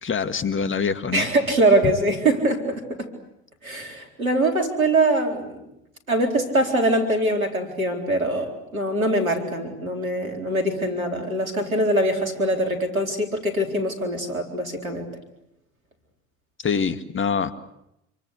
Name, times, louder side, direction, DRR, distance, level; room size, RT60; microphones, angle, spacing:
voice 1, 0.0-1.3 16.6-17.5, left 6 dB, 30° left, 11 dB, 2.1 m, -25 dB
voice 2, 1.1-3.1 3.6-5.6 6.1-15.1, right 1 dB, 90° right, 4 dB, 4.3 m, -23 dB
27.5 x 24.5 x 8.2 m, 0.83 s
figure-of-eight pair, 65°, 40 cm